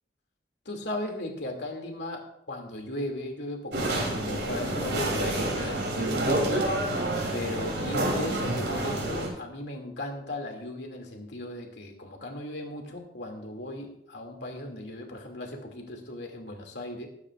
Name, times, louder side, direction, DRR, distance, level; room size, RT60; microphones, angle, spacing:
voice 1, 0.7-6.6 7.3-17.1, left 1 dB, 70° left, 2 dB, 2.4 m, -37 dB
sound 1, 3.7-9.3, right 1 dB, 70° right, 3.0 m, -28 dB
20.5 x 9.7 x 2.4 m, 0.76 s
head